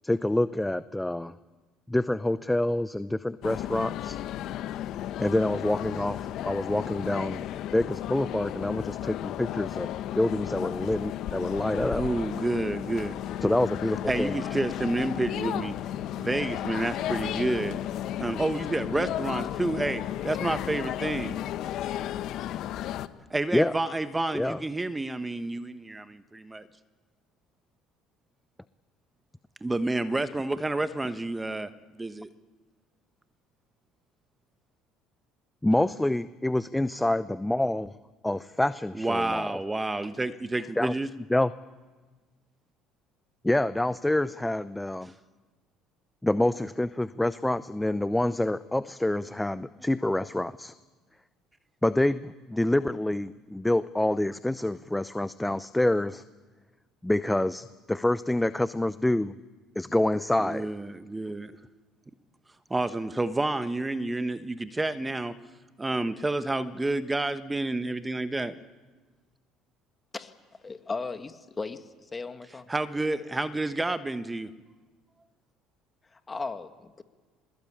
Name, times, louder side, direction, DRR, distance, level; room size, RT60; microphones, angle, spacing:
voice 1, 0.0-1.3 1.9-4.2 5.2-7.4 7.7-12.0 13.4-14.4 23.5-23.7 24.3-24.6 35.6-37.9 38.2-39.6 40.8-40.9 41.3-41.5 43.4-45.1 46.2-50.7 51.8-56.2 57.0-59.3 59.8-60.7, left 1 dB, 10° left, 15 dB, 0.7 m, -27 dB
sound 1, 3.4-23.1, left 12 dB, 65° left, 1.0 m, -34 dB
voice 2, 11.9-13.2 14.1-15.7 16.2-17.8 18.2-21.4 23.3-26.6 29.6-31.7 32.0-32.3 38.9-41.1 60.4-61.5 62.7-65.3 65.8-68.5 72.7-74.5, right 2 dB, 15° right, 12 dB, 1.2 m, -29 dB
voice 3, 70.6-71.8 72.1-72.6 76.3-77.0, left 4 dB, 25° left, 8 dB, 2.1 m, -36 dB
23.5 x 21.0 x 8.8 m, 1.3 s
hypercardioid pair, 70°, 0 cm